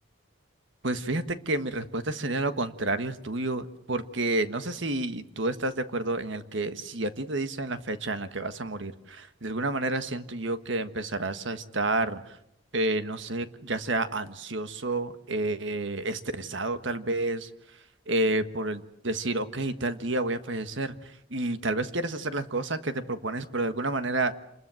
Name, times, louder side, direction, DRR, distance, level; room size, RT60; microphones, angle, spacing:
voice 1, 0.8-12.2 12.7-17.5 18.1-20.9 21.3-24.3, right 2 dB, 65° right, 10 dB, 1.5 m, -30 dB
28.0 x 21.0 x 7.8 m, 0.81 s
head